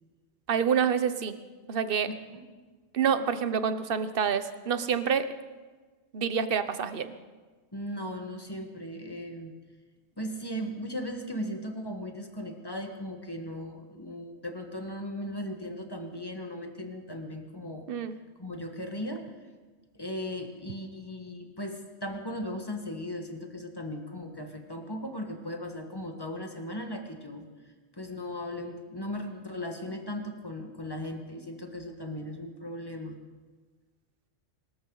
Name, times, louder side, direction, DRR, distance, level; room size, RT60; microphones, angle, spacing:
voice 1, 0.5-1.3 1.7-2.1 2.9-5.3 6.1-7.1 17.9-18.1, right 7 dB, 50° right, 11 dB, 1.0 m, -27 dB
voice 2, 2.1-2.4 7.7-9.6 10.2-17.9 18.4-19.3 19.9-27.5 27.9-33.2, left 1 dB, 20° left, 4 dB, 1.5 m, -37 dB
24.5 x 13.5 x 3.9 m, 1.4 s
omnidirectional pair, 1.3 m